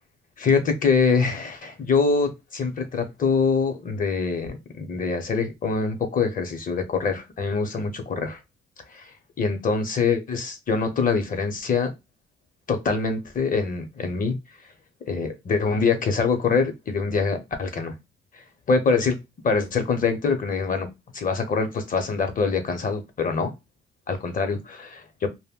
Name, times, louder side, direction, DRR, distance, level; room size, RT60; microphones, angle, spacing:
voice 1, 0.4-8.4 8.9-9.1 9.4-11.9 12.7-14.4 15.1-17.9 18.3-18.4 18.7-19.2 19.4-20.9 21.1-23.5 24.1-25.3, left 4 dB, 45° left, 0.7 m, -24 dB
2.2 x 2.1 x 3.5 m
cardioid pair, 90°, 20 cm